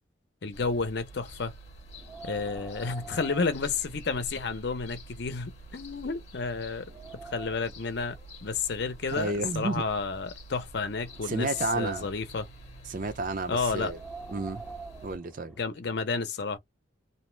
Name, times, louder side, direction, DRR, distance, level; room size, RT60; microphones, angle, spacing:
voice 1, 0.4-1.5 2.2-6.9 7.2-12.5 13.5-13.9 15.6-16.6, left 4 dB, 60° left, 0.6 m, -31 dB
sound 1, 0.5-15.2, right 1 dB, 35° left, 0.9 m, -48 dB
Wind, 1.9-4.5 4.9-5.0 5.6-5.7 6.2-7.8 8.7-10.2 10.8-12.4 13.7-15.8, right 4 dB, 5° right, 0.5 m, -46 dB
voice 2, 9.1-9.8 11.3-12.1 12.9-14.0 14.3-14.6 15.0-15.6, right 3 dB, 45° right, 0.6 m, -31 dB
2.7 x 2.0 x 3.1 m
head